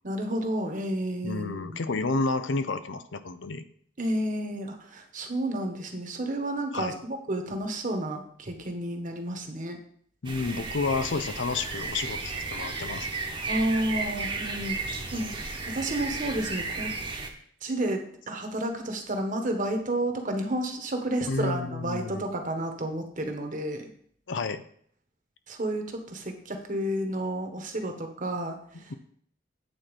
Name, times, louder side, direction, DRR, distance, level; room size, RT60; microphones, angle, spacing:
voice 1, 0.0-1.8 4.0-9.8 13.5-15.3 15.7-16.9 17.6-23.9 25.5-28.6, right 1 dB, 45° right, 4 dB, 1.3 m, -31 dB
voice 2, 1.2-3.6 6.7-7.0 10.2-13.1 21.3-22.3 24.3-24.6 28.7-28.9, left 3 dB, 75° left, 11 dB, 0.6 m, -30 dB
sound 1, 10.2-17.3, right 3 dB, 25° right, 1.1 m, -34 dB
9.2 x 4.4 x 6.3 m, 0.62 s
head